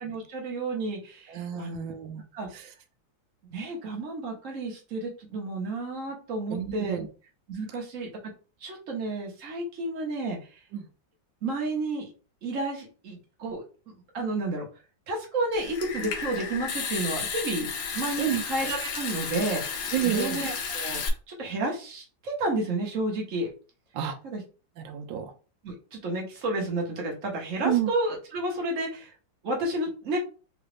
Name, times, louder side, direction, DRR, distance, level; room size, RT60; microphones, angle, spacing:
voice 1, 0.0-1.8 2.3-2.7 3.4-7.0 7.5-8.1 8.6-10.6 11.4-12.1 12.4-13.6 14.1-14.7 15.1-23.5 24.2-24.4 25.6-29.1 29.4-30.2, right 2 dB, 45° right, 0 dB, 1.3 m, -31 dB
voice 2, 1.3-2.2 2.5-2.7 6.5-7.1 10.7-10.9 18.2-18.4 19.9-20.4 23.9-24.2 24.8-25.3 27.6-27.9, right 11 dB, 80° right, 5 dB, 1.3 m, -30 dB
Water tap faucet / Sink (filling or washing) / Trickle dribble, 15.5-21.1, left 6 dB, 80° left, 1.5 m, -33 dB
3.9 x 2.4 x 3.2 m, 0.36 s
omnidirectional pair, 2.1 m